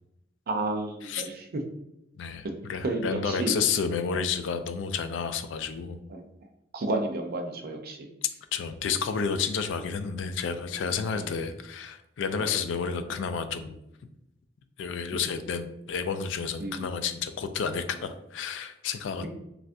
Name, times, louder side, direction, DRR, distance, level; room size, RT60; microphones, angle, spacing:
voice 1, 0.5-1.4 2.8-3.5 4.1-4.2 6.1-6.2 6.7-8.1 11.1-11.3 12.4-12.5 16.6-16.9, right 2 dB, 55° right, 4 dB, 0.5 m, -31 dB
voice 2, 2.2-6.0 8.5-13.8 14.8-19.3, left 6 dB, 70° left, 9 dB, 0.3 m, -31 dB
3.3 x 2.4 x 2.6 m, 0.83 s
head